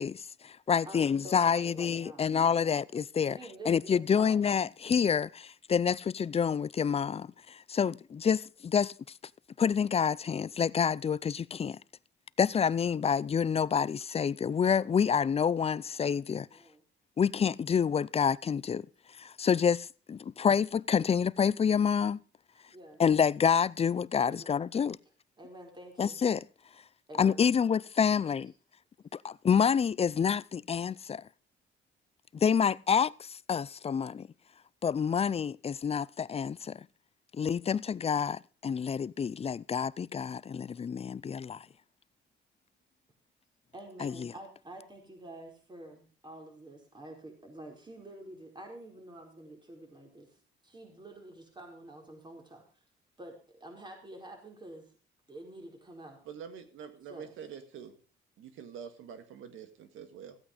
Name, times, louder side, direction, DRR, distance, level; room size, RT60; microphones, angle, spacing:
voice 1, 0.0-3.4 3.7-8.9 9.6-11.8 12.4-16.5 17.2-18.9 19.2-22.2 23.0-25.0 26.0-26.4 27.2-28.5 29.2-31.2 32.3-34.3 34.8-36.9 37.3-41.7 44.0-44.3, left 7 dB, 30° left, 0.5 m, -28 dB
voice 2, 0.9-2.8 3.3-4.6 15.8-16.0 16.5-16.8 22.7-23.0 24.2-24.7 25.4-26.2 27.1-27.4 43.7-50.3 50.6-52.6 53.2-54.9 55.3-56.2 57.1-57.4, right 1 dB, 20° right, 4.7 m, -48 dB
voice 3, 56.3-58.0 58.4-60.4, right 7 dB, 85° right, 1.9 m, -46 dB
15.0 x 8.5 x 5.1 m
cardioid pair, 90°, 20 cm